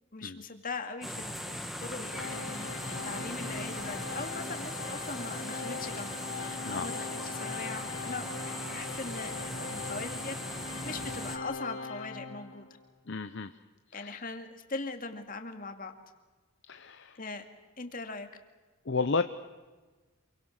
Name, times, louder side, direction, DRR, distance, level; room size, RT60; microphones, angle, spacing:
voice 1, 0.1-8.2 8.7-10.3 10.8-12.7 13.9-15.9 17.2-17.5 17.8-18.3, left 3 dB, 40° left, 5 dB, 2.2 m, -40 dB
sound 1, 1.0-11.4, equal, ahead, 1.9 m, -39 dB
Organ, 2.0-12.8, left 4 dB, 80° left, 5.9 m, -41 dB
voice 2, 13.1-13.5 13.9-14.2 16.7-17.2 18.9-19.2, left 4 dB, 55° left, 9 dB, 0.8 m, -32 dB
27.5 x 23.5 x 6.6 m, 1.3 s
head